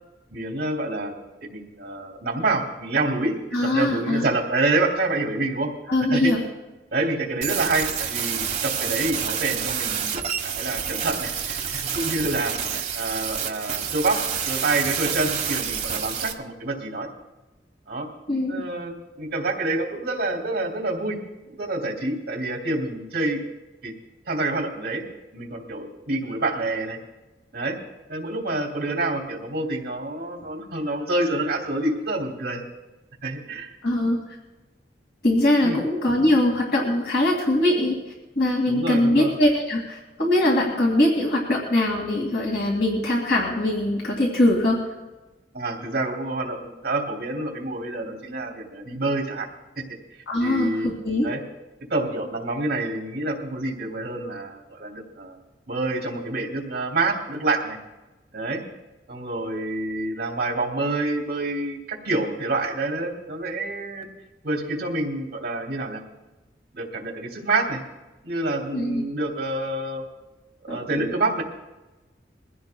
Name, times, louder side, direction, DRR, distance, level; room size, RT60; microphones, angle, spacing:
voice 1, 0.3-1.1 1.4-3.3 3.7-5.7 6.1-6.3 6.9-17.1 17.9-18.1 18.5-21.2 21.5-23.4 23.8-23.9 24.2-25.1 25.3-27.0 27.5-27.8 28.1-32.6 33.2-33.7 35.6-35.8 38.7-39.3 45.5-49.5 50.4-50.9 51.2-51.4 51.9-55.4 55.7-57.8 58.3-58.6 59.1-64.1 64.4-66.0 66.7-67.8 68.2-70.0 70.6-71.4, right 2 dB, 60° right, 1 dB, 2.8 m, -27 dB
voice 2, 3.5-4.2 5.9-6.4 18.3-18.7 33.8-34.2 35.2-38.0 38.4-44.8 50.3-51.3 68.7-69.0 70.7-71.0, left 1 dB, 70° left, -2 dB, 2.4 m, -22 dB
sound 1, 7.4-16.3, right 7 dB, 40° right, 1.3 m, -28 dB
22.5 x 15.5 x 2.3 m, 1.1 s
head